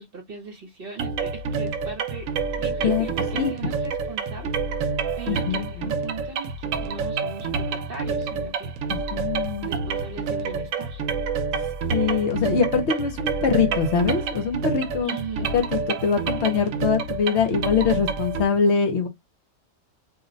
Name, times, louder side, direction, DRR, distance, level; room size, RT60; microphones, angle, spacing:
voice 1, 0.0-2.3 2.6-4.5 5.1-8.7 9.7-11.0 15.0-15.5, right 5 dB, 50° right, 0.9 m, -39 dB
sound 1, 1.0-18.4, right 5 dB, 85° right, 0.9 m, -28 dB
voice 2, 5.3-6.0 8.9-9.7 11.9-15.2 15.5-19.1, left 6 dB, 65° left, 0.9 m, -23 dB
2.5 x 2.1 x 3.8 m
omnidirectional pair, 1.3 m